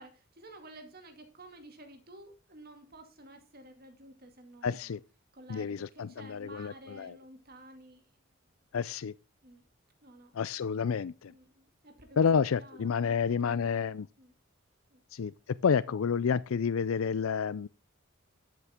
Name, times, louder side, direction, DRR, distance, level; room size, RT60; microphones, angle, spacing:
voice 1, 0.0-5.0 5.3-8.2 9.4-9.7 10.0-10.3 11.3-12.3 12.6-13.8 14.2-14.4 14.9-15.0, right 1 dB, 45° right, 2.3 m, -52 dB
voice 2, 4.6-5.0 5.5-7.1 8.7-9.1 10.3-11.3 12.2-14.1 15.1-15.3 15.6-17.7, left 6 dB, 80° left, 0.4 m, -29 dB
12.0 x 8.5 x 3.6 m
head